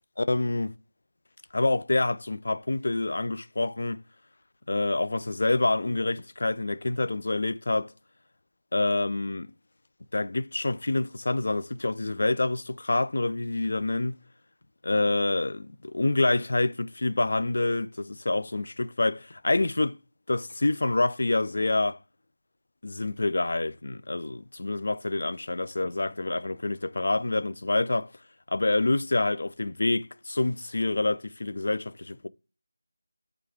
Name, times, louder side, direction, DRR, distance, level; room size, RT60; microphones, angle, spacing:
voice 1, 0.2-0.8 1.5-4.0 4.7-7.9 8.7-9.5 10.1-14.2 14.8-20.0 20.3-22.0 22.8-28.1 28.5-32.3, left 2 dB, 45° left, 0.4 m, -27 dB
8.2 x 3.3 x 3.5 m
figure-of-eight pair, 180°, 0 cm